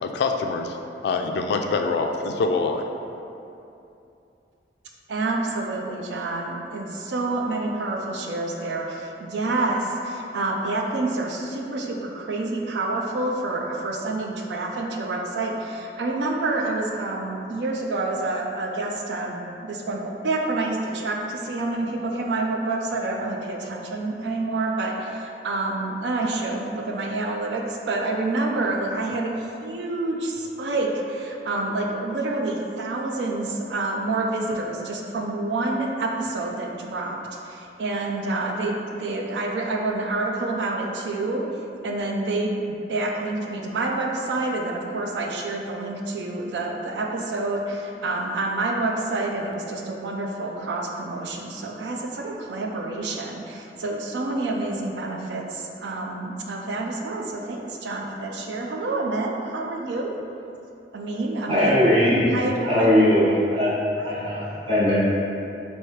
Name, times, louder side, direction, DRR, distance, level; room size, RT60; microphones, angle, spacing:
voice 1, 0.0-0.8 1.0-2.8, left 4 dB, 65° left, 4 dB, 0.3 m, -24 dB
voice 2, 5.1-37.2 37.4-41.4 41.8-60.1 60.9-61.8 62.3-62.9 64.0-64.2, right 2 dB, 65° right, 1 dB, 0.4 m, -28 dB
voice 3, 61.5-62.2 62.7-63.7 64.0-64.9, left 1 dB, 35° right, -12 dB, 1.2 m, -19 dB
4.5 x 2.7 x 3.1 m, 2.7 s
head